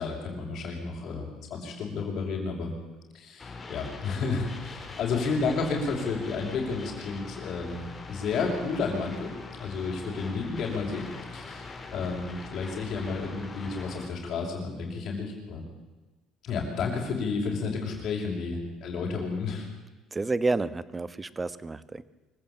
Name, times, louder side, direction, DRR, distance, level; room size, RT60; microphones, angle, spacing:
voice 1, 0.0-2.7 3.1-9.3 9.6-15.7 16.4-19.7, left 4 dB, 55° left, -6 dB, 6.2 m, -31 dB
sound 1, 3.4-14.1, left 3 dB, 25° left, 4.4 m, -42 dB
voice 2, 20.1-22.0, right 3 dB, 20° right, 16 dB, 1.2 m, -30 dB
25.0 x 15.5 x 8.8 m, 1.2 s
cardioid pair, 105°, 0 cm